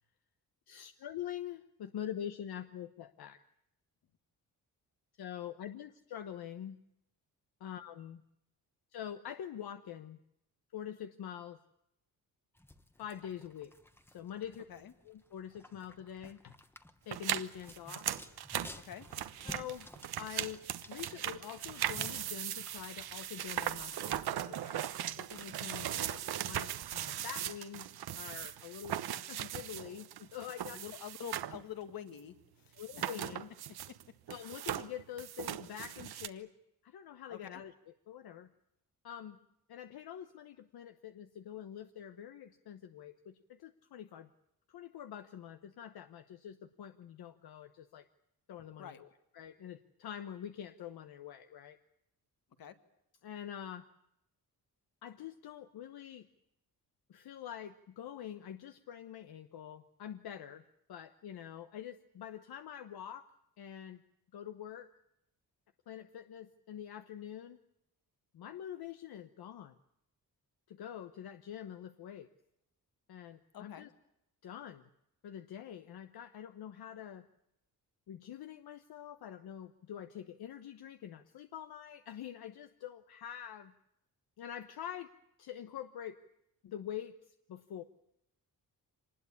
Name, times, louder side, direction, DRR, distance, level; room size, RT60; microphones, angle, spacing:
voice 1, 0.7-3.4 5.2-6.8 7.6-8.2 8.9-10.2 10.7-11.6 13.0-13.7 14.1-14.6 15.0-16.5 17.1-18.1 19.4-19.9 20.2-20.6 20.9-27.9 28.2-30.8 32.8-33.5 34.3-36.5 36.8-37.7 38.1-38.5 39.0-39.4 39.7-44.3 44.7-48.0 48.5-51.8 53.2-53.9 55.0-56.3 57.1-63.2 63.6-64.0 64.3-64.9 65.9-67.6 68.3-69.8 70.7-72.3 73.1-73.9 74.4-74.9 75.2-77.3 78.1-83.7 84.4-85.1 85.4-86.2 86.6-87.1 87.5-87.8, left 10 dB, 80° left, 9 dB, 1.2 m, -45 dB
sound 1, 12.5-26.5, left 1 dB, 5° left, 1.1 m, -55 dB
sound 2, 17.1-31.6 31.9-32.0 32.8-34.0 34.3-36.3, right 11 dB, 85° right, 1.1 m, -39 dB
voice 2, 18.7-19.1 30.7-33.1 33.9-34.0 37.3-37.6 48.8-49.0 52.6-52.8 73.5-73.9, left 9 dB, 65° left, 9 dB, 1.9 m, -47 dB
26.0 x 20.0 x 8.5 m, 0.82 s
wide cardioid pair, 150°, 37 cm